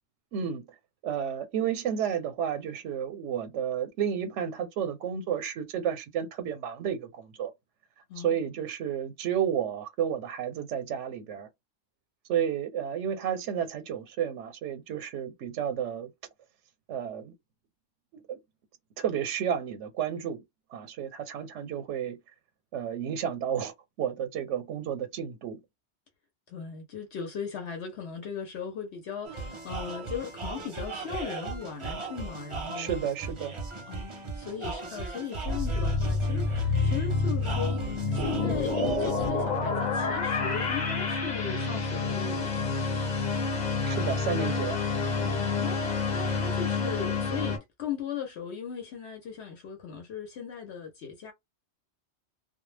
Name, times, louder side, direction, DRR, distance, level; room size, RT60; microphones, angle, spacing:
voice 1, 0.3-0.7 1.0-7.5 8.2-11.5 12.3-16.1 16.9-17.3 18.1-18.4 19.0-20.4 20.7-22.2 22.7-25.6 32.7-33.6 43.9-44.8, right 8 dB, 85° right, 0.9 m, -31 dB
voice 2, 26.5-32.9 33.9-43.6 45.2-51.3, left 6 dB, 70° left, 0.9 m, -38 dB
sound 1, 29.2-39.3, right 4 dB, 35° right, 0.6 m, -37 dB
sound 2, 35.5-47.6, left 4 dB, 45° left, 0.8 m, -28 dB
2.2 x 2.1 x 3.2 m
omnidirectional pair, 1.2 m